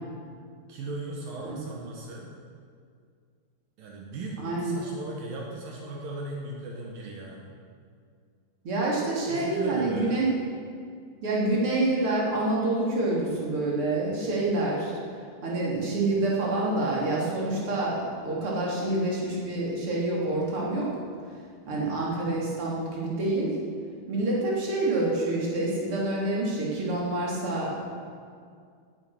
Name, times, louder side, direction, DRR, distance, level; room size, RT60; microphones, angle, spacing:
voice 1, 0.7-2.3 3.8-7.5 9.3-10.2, right 2 dB, 75° right, -2 dB, 3.1 m, -37 dB
voice 2, 4.4-4.7 8.6-10.3 11.2-14.9 15.4-20.9 21.7-23.6 24.1-27.8, right 2 dB, 40° right, -4 dB, 3.9 m, -27 dB
18.0 x 9.9 x 6.5 m, 2.2 s
omnidirectional pair, 4.1 m